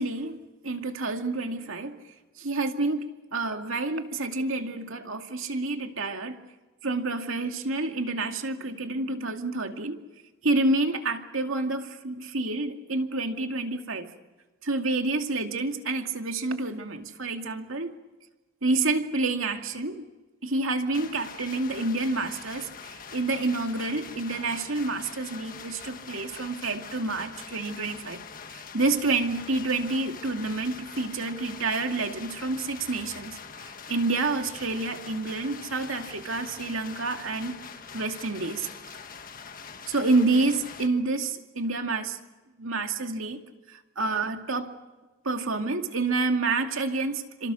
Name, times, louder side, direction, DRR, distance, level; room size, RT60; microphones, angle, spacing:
voice 1, 0.0-2.0 2.4-6.4 6.8-10.0 10.4-14.1 14.6-17.9 18.6-20.0 20.4-28.2 28.5-37.6 37.9-38.7 39.9-42.2 42.6-43.4 43.7-44.7 45.2-47.5, right 3 dB, 75° right, 2.4 m, -28 dB
sound 1, 20.9-40.9, left 6 dB, 40° left, 1.6 m, -44 dB
29.0 x 26.5 x 6.4 m
head